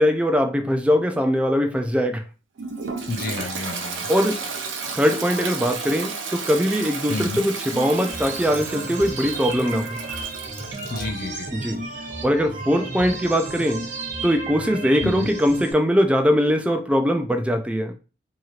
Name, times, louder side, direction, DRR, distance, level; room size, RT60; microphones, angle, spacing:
voice 1, 0.0-2.2 4.1-4.4 4.9-9.9 11.5-11.8 12.2-13.8 14.2-17.9, equal, 5° right, 0.3 m, -21 dB
Toilet flush, 2.6-11.1, right 4 dB, 90° right, 0.5 m, -33 dB
voice 2, 3.1-4.1 7.1-7.4 10.9-11.5 15.0-15.3, left 3 dB, 50° left, 0.5 m, -29 dB
sound 1, 7.7-15.7, right 3 dB, 45° right, 0.8 m, -33 dB
3.0 x 2.8 x 2.4 m
head